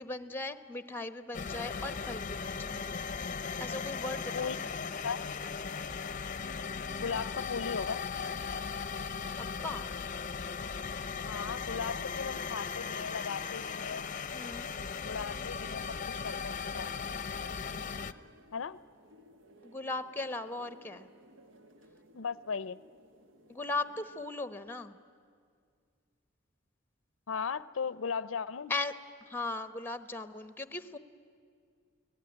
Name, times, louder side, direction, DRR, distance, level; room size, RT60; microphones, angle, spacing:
voice 1, 0.0-2.8 3.6-4.7 9.6-9.9 14.3-14.7 19.6-21.1 23.5-25.0 28.7-28.9 29.2-31.0, left 3 dB, 10° left, 11 dB, 0.9 m, -38 dB
sound 1, 1.3-18.1, left 5 dB, 40° left, 0.7 m, -37 dB
voice 2, 4.3-4.7 5.0-5.2 6.9-8.0 11.2-14.0 15.0-16.9 18.5-18.8 22.1-22.8 27.3-28.7, left 6 dB, 90° left, 17 dB, 0.6 m, -37 dB
sound 2, 11.0-24.3, equal, 70° right, 1.3 m, -59 dB
29.5 x 18.0 x 9.9 m, 2.2 s
head